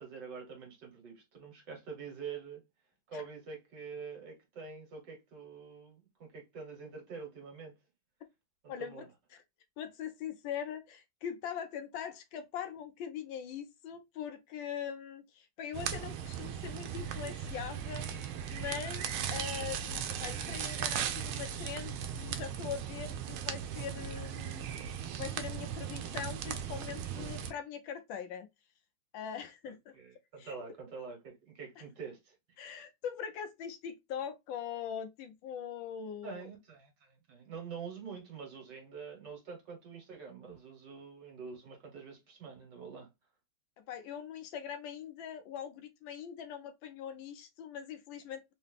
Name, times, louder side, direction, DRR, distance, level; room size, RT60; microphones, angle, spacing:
voice 1, 0.0-2.6 3.1-7.7 8.6-9.1 27.1-27.3 29.7-32.4 36.2-43.1, right 5 dB, 60° right, 1.9 m, -46 dB
voice 2, 8.7-9.4 9.8-24.7 25.2-28.5 29.1-29.9 30.4-30.5 32.6-36.5 43.8-48.5, left 8 dB, 75° left, 1.3 m, -42 dB
sound 1, 15.7-27.5, right 8 dB, 90° right, 1.4 m, -38 dB
3.8 x 2.7 x 3.4 m
omnidirectional pair, 2.2 m